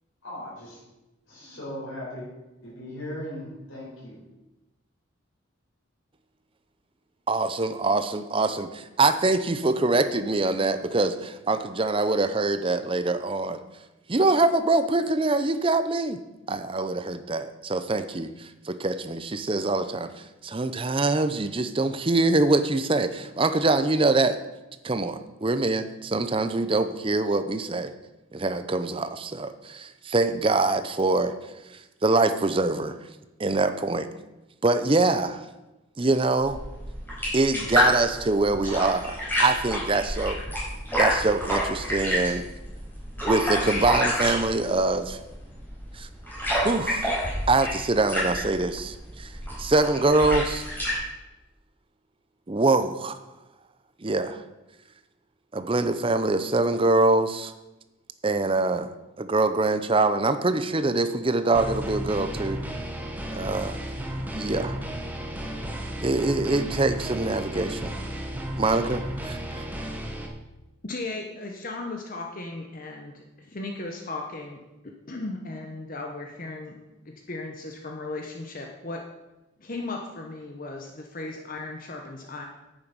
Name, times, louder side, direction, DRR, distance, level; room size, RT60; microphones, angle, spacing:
voice 1, 0.2-0.8 1.3-2.3 2.6-4.2, left 1 dB, 80° left, -8 dB, 4.6 m, -38 dB
voice 2, 7.3-13.6 14.1-16.2 16.5-20.1 20.4-24.4 24.8-27.9 28.3-31.3 32.0-33.0 33.4-34.1 34.6-35.4 36.0-36.6 37.3-40.4 41.0-42.5 43.3-45.2 45.9-46.1 46.6-47.1 47.5-49.3 49.6-50.6 52.5-53.2 54.0-54.4 55.5-57.5 58.2-58.9 59.2-62.6 63.3-63.8 64.3-64.8 66.0-68.0 68.6-69.6, right 2 dB, 25° right, 11 dB, 0.6 m, -24 dB
sound 1, 36.4-51.0, equal, 10° left, 5.0 m, -29 dB
sound 2, 61.5-70.3, equal, 10° right, 1.1 m, -33 dB
voice 3, 70.8-76.8 77.0-79.1 79.6-82.4, left 2 dB, 40° left, 2 dB, 1.0 m, -36 dB
10.5 x 8.9 x 5.3 m, 1.0 s
head